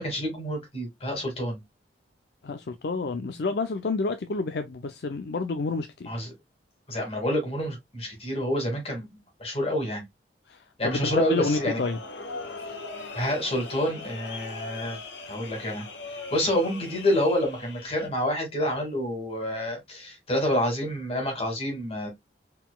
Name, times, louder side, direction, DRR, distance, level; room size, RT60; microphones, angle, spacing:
voice 1, 0.0-1.6 6.1-6.3 6.9-10.0 10.8-11.8 13.1-15.0 15.3-15.9 16.3-22.1, equal, 35° left, 2.0 m, -28 dB
voice 2, 2.4-6.1 10.5-12.0, left 3 dB, 60° left, 0.5 m, -29 dB
sound 1, 10.8-18.1, left 3 dB, 80° left, 1.0 m, -40 dB
4.4 x 3.9 x 2.2 m
head